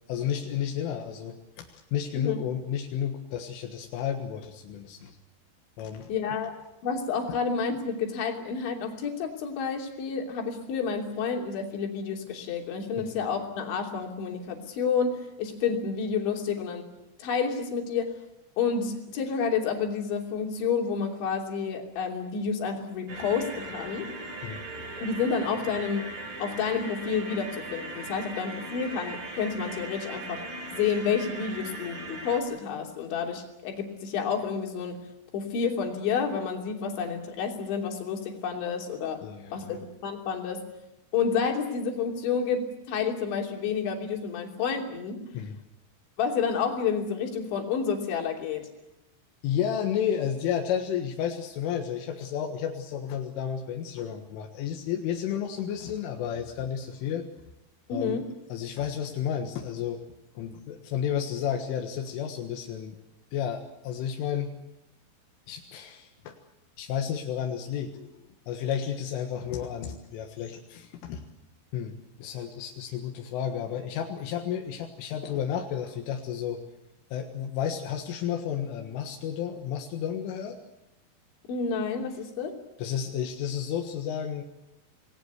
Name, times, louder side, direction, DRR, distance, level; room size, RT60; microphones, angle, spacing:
voice 1, 0.1-5.1 5.8-6.1 7.3-7.4 13.0-13.2 24.4-24.6 39.2-39.8 45.3-45.6 49.4-57.2 57.9-58.2 58.5-60.0 60.4-63.0 63.3-64.5 65.5-66.3 66.8-68.1 68.5-71.3 71.7-76.6 77.1-80.6 82.8-84.4, left 9 dB, 90° left, 3 dB, 4.1 m, -32 dB
voice 2, 6.1-6.6 6.8-16.8 17.2-18.1 18.6-24.1 25.0-26.1 26.4-30.4 30.7-35.0 35.3-39.2 39.5-40.6 41.1-45.2 46.2-48.7 57.9-58.3 81.5-82.6, left 6 dB, 70° left, 2 dB, 5.3 m, -29 dB
sound 1, 23.1-32.4, right 2 dB, 45° right, 5.7 m, -39 dB
28.0 x 20.0 x 8.2 m, 0.92 s
omnidirectional pair, 5.6 m